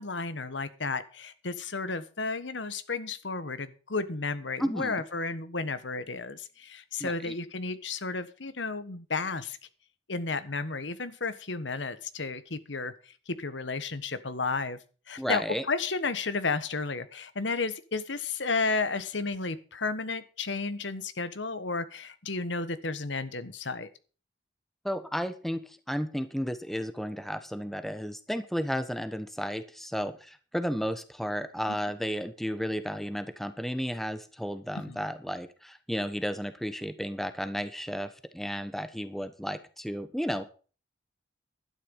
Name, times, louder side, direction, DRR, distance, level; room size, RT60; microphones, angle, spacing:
voice 1, 0.0-9.6 10.1-12.9 13.3-14.8 15.1-23.9 31.7-31.8 34.9-35.0, left 3 dB, 75° left, 13 dB, 1.4 m, -32 dB
voice 2, 4.6-4.9 7.0-7.3 15.2-15.6 24.8-40.4, equal, ahead, 10 dB, 1.1 m, -33 dB
12.0 x 10.5 x 5.4 m, 0.37 s
head